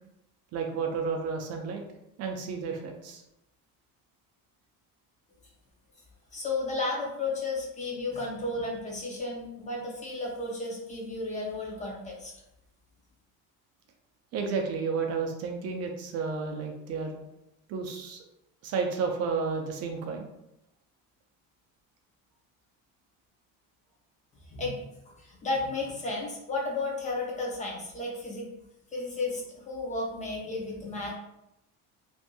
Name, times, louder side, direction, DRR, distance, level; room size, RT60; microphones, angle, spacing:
voice 1, 0.5-1.8 2.2-3.2 14.3-17.2 17.7-18.2 18.6-20.3, right 5 dB, 50° right, 3 dB, 0.5 m, -31 dB
voice 2, 6.3-12.3 24.5-24.8 25.2-28.5 28.9-31.2, left 2 dB, 20° left, -2 dB, 0.5 m, -33 dB
2.8 x 2.6 x 2.2 m, 0.86 s
cardioid pair, 140°, 34 cm